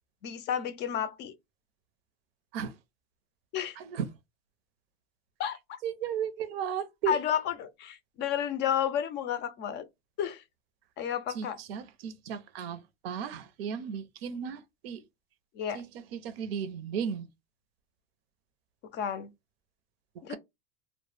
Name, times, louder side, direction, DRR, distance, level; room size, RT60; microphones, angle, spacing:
voice 1, 0.2-1.3 3.5-3.8 5.4-5.8 7.1-9.9 10.2-10.4 11.0-11.6 15.6-15.8 18.9-19.3 20.2-20.4, left 9 dB, 35° left, 0.4 m, -31 dB
voice 2, 3.8-4.1 5.8-7.2 11.3-15.0 15.7-15.8 16.1-17.3 20.3-20.4, right 8 dB, 80° right, 0.5 m, -35 dB
2.1 x 2.0 x 3.1 m
supercardioid pair, 120°, 30 cm